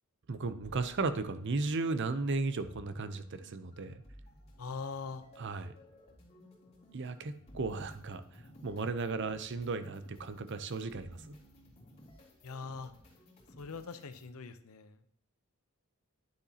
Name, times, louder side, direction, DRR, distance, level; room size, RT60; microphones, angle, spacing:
voice 1, 0.3-4.0 5.4-5.8 6.9-8.2 8.6-11.3, right 3 dB, 55° right, 11 dB, 0.6 m, -35 dB
sound 1, 0.6-14.3, left 1 dB, 30° left, 2.3 m, -57 dB
voice 2, 4.6-5.2 12.4-12.9 13.6-15.0, left 4 dB, 80° left, 10 dB, 0.7 m, -42 dB
9.8 x 6.9 x 2.8 m, 0.67 s
head